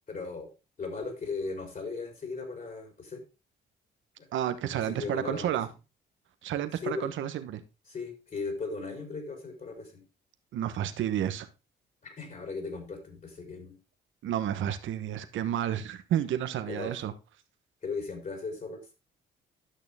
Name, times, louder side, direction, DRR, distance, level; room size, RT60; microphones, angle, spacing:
voice 1, 0.1-0.5 0.8-3.2 4.2-4.3 4.9-5.6 6.8-7.1 7.9-10.0 12.0-13.7 16.7-17.0 17.8-18.9, left 4 dB, 45° left, 3.8 m, -37 dB
voice 2, 4.3-5.7 6.4-7.6 10.5-11.5 14.2-17.1, right 10 dB, 75° right, 1.1 m, -31 dB
11.5 x 6.4 x 3.4 m
cardioid pair, 90°, 20 cm